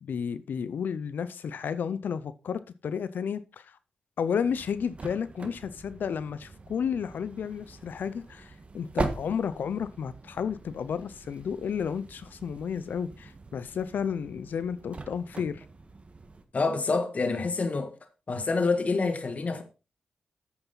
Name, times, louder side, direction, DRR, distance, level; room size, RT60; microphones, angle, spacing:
voice 1, 0.0-3.8 4.2-15.6, left 7 dB, 80° left, 0.6 m, -32 dB
sound 1, 4.4-16.4, right 3 dB, 40° right, 1.6 m, -41 dB
voice 2, 16.5-17.9 18.3-19.6, left 4 dB, 50° left, 1.5 m, -27 dB
9.6 x 8.1 x 4.1 m
cardioid pair, 65°, 3 cm